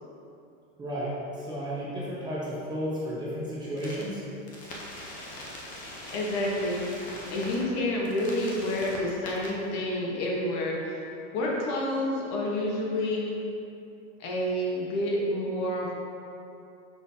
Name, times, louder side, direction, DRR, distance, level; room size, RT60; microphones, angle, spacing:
voice 1, 0.8-4.2, equal, 10° right, -8 dB, 1.1 m, -33 dB
sound 1, 3.8-4.0 4.5-7.6 8.0-9.5, left 1 dB, 20° left, 0.8 m, -41 dB
voice 2, 6.1-11.0 11.3-13.4 14.2-15.9, left 1 dB, 40° left, -3 dB, 1.3 m, -29 dB
6.1 x 6.0 x 2.8 m, 2.7 s
supercardioid pair, 150°, 39 cm